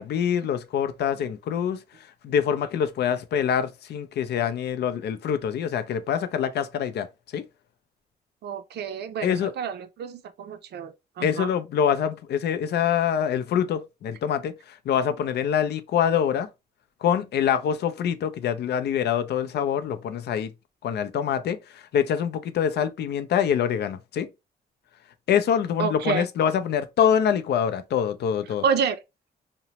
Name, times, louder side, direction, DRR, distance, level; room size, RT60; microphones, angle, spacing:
voice 1, 0.0-1.8 2.2-7.1 7.3-7.4 9.2-9.5 11.2-16.5 17.0-20.5 20.8-24.3 25.3-28.6, left 8 dB, 75° left, 0.4 m, -25 dB
voice 2, 8.4-11.5 25.8-26.3 28.6-29.0, right 6 dB, 80° right, 0.4 m, -29 dB
2.9 x 2.1 x 2.7 m
wide cardioid pair, 135°, 17 cm